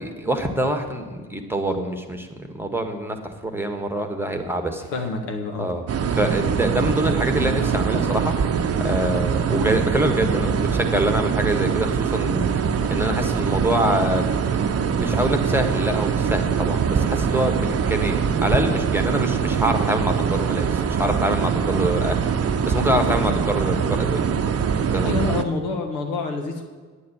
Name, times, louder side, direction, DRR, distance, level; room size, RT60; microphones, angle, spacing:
voice 1, 0.0-4.8 5.6-5.8 6.1-8.3 8.8-14.3 14.9-22.2 22.6-24.2 24.9-25.2, right 1 dB, 5° right, 5 dB, 1.5 m, -25 dB
voice 2, 4.9-5.7 25.0-26.6, left 3 dB, 70° left, 4 dB, 1.5 m, -27 dB
sound 1, 5.9-25.4, right 7 dB, 35° right, 0.8 m, -23 dB
9.4 x 9.2 x 7.0 m, 1.4 s
figure-of-eight pair, 45°, 44 cm